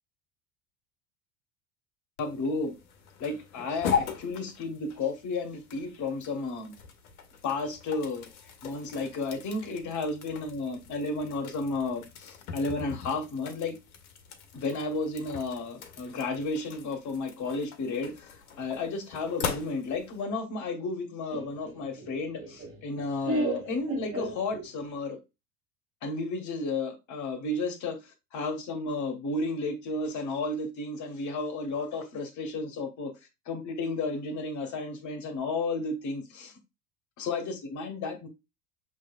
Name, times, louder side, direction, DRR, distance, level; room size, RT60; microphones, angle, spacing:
sound 1, 2.2-20.2, left 7 dB, 65° left, 1.0 m, -39 dB
voice 1, 2.2-2.8 3.2-6.7 7.4-8.3 8.6-13.8 14.5-25.2 26.0-33.1 33.5-36.5 37.2-38.3, left 3 dB, 40° left, 1.3 m, -33 dB
Laughter, 21.3-25.0, right 2 dB, 30° right, 1.6 m, -34 dB
6.2 x 3.2 x 2.4 m
figure-of-eight pair, 75°, 46 cm